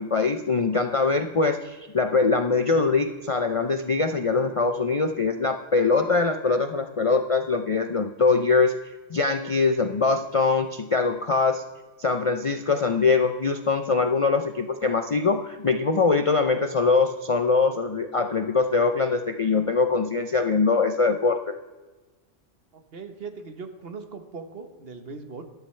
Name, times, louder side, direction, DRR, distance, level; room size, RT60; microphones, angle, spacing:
voice 1, 0.0-8.8 9.1-11.6 12.0-21.6, left 4 dB, 45° left, 7 dB, 0.4 m, -23 dB
voice 2, 22.7-25.4, right 4 dB, 55° right, 7 dB, 1.3 m, -39 dB
13.0 x 12.0 x 3.2 m, 1.2 s
omnidirectional pair, 1.2 m